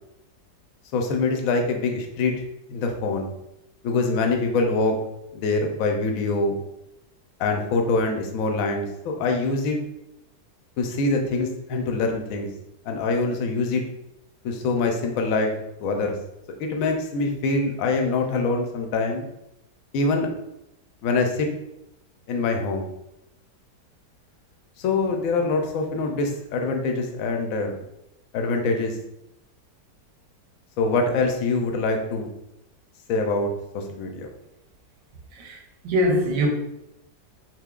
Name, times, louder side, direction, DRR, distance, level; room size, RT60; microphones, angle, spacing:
voice 1, 0.9-2.3 2.7-3.3 3.8-5.0 5.3-6.6 7.4-9.8 10.8-12.5 12.8-13.8 14.4-15.5 15.8-16.2 16.6-19.3 19.9-20.3 21.0-21.5 22.3-22.9 24.8-27.8 28.3-29.0 30.8-32.3 33.1-33.5 33.7-34.3, left 3 dB, 70° left, 0.9 m, -24 dB
voice 2, 35.8-36.5, equal, 90° right, 1.3 m, -22 dB
5.6 x 2.0 x 2.3 m
omnidirectional pair, 1.8 m